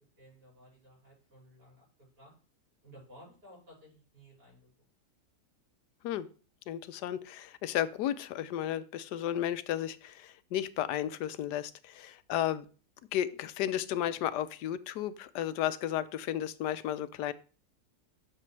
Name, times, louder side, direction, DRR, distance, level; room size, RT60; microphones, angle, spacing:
voice 1, 0.2-2.3 2.8-4.7, equal, 85° right, -4 dB, 6.1 m, -56 dB
voice 2, 6.7-12.7 13.1-17.3, left 11 dB, 85° left, 15 dB, 1.2 m, -33 dB
11.0 x 6.8 x 3.2 m, 0.37 s
omnidirectional pair, 1.7 m